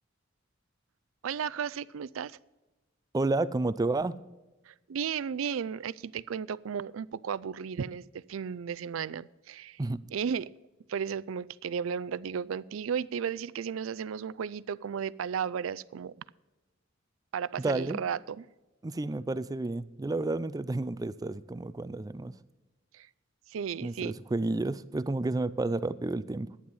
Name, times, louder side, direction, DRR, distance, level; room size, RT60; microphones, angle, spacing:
voice 1, 1.2-2.4 4.7-9.8 10.1-10.5 10.9-16.1 17.3-18.4 22.9-23.1 23.5-24.1, right 7 dB, 80° right, 18 dB, 0.4 m, -34 dB
voice 2, 3.1-4.2 9.8-10.0 17.6-18.0 18.8-22.3 23.8-26.5, right 2 dB, 20° right, 17 dB, 0.4 m, -31 dB
11.5 x 9.8 x 5.4 m, 1.1 s
head